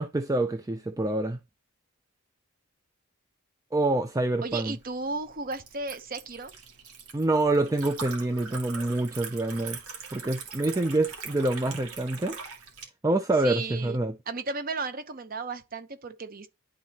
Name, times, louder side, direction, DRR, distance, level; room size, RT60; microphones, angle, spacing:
voice 1, 0.0-1.4 3.7-4.8 7.1-9.8 10.1-12.4 13.0-14.2, right 2 dB, 15° right, 0.4 m, -26 dB
voice 2, 4.4-6.5 13.4-14.0 14.3-16.5, right 3 dB, 40° right, 0.9 m, -34 dB
Liquid, 4.5-12.9, right 5 dB, 85° right, 2.2 m, -42 dB
11.0 x 4.1 x 2.9 m
head